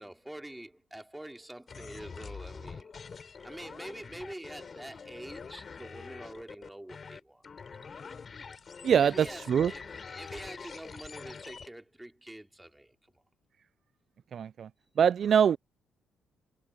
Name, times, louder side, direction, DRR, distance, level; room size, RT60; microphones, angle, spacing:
voice 1, 0.0-2.9 3.4-7.4 7.7-8.0 9.0-13.2, right 1 dB, 5° right, 2.9 m, -46 dB
sound 1, 1.7-11.7, left 5 dB, 40° left, 4.8 m, -45 dB
voice 2, 8.8-9.7 14.3-14.7 15.0-15.6, right 8 dB, 55° right, 0.3 m, -24 dB
cardioid pair, 90°, 0 cm